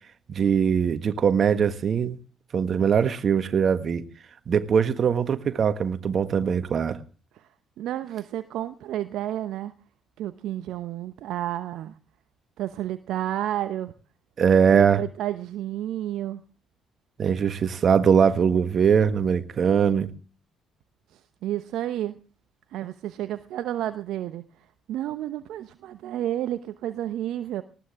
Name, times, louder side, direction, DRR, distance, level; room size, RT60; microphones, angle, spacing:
voice 1, 0.3-2.2 2.5-4.0 4.5-7.0 14.4-15.0 17.2-20.1, right 7 dB, 50° right, 1.5 m, -21 dB
voice 2, 7.8-9.7 10.2-11.9 12.6-13.9 14.7-16.4 21.1-22.1 22.7-24.4 24.9-27.6, right 12 dB, 65° right, 0.9 m, -31 dB
19.5 x 17.0 x 3.6 m
hypercardioid pair, 50°, 0 cm